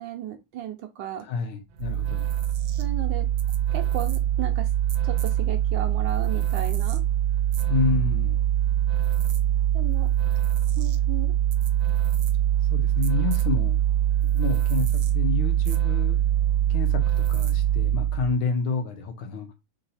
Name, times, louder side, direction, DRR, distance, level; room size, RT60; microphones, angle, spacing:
voice 1, 0.0-1.2 2.8-3.3 3.7-4.8 5.0-7.0 9.7-10.1 10.8-11.3, right 10 dB, 70° right, 1.2 m, -34 dB
voice 2, 1.2-2.4 7.7-8.5 12.7-13.8 14.2-16.2 16.7-19.5, left 4 dB, 75° left, 1.6 m, -29 dB
sound 1, 1.8-18.4, right 11 dB, 90° right, 0.8 m, -23 dB
3.9 x 2.7 x 4.1 m
omnidirectional pair, 2.4 m